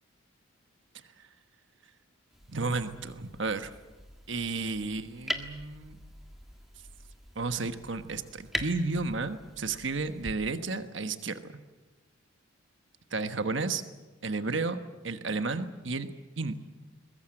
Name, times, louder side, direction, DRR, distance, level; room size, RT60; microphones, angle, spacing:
sound 1, 2.3-10.3, equal, ahead, 1.6 m, -42 dB
voice 1, 2.5-3.7 4.3-6.0 7.3-11.4 13.1-13.8 14.2-14.8 15.0-16.6, right 3 dB, 60° right, 9 dB, 1.3 m, -32 dB
22.5 x 21.0 x 8.9 m, 1.2 s
head